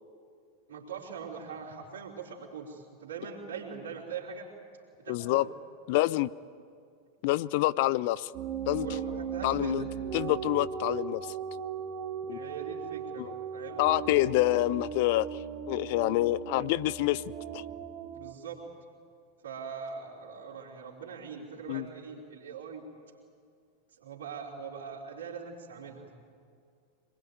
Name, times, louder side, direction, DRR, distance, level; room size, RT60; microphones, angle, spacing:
voice 1, 0.7-4.5 5.0-5.4 8.8-9.9 12.3-13.8 14.2-14.3 18.1-18.6 19.4-22.8 23.9-26.1, right 6 dB, 60° right, -6 dB, 4.3 m, -42 dB
voice 2, 5.1-5.5 5.9-6.3 7.2-8.3 8.7-8.9 9.4-9.8 10.1-11.3 12.3-12.4 13.2-13.3 13.8-17.2 17.5-17.6 21.7-21.8, left 17 dB, 50° left, 18 dB, 0.5 m, -27 dB
sound 1, 8.3-18.3, right 7 dB, 40° right, 1.9 m, -38 dB
26.0 x 20.5 x 9.4 m, 2.3 s
figure-of-eight pair, 90°, 0 cm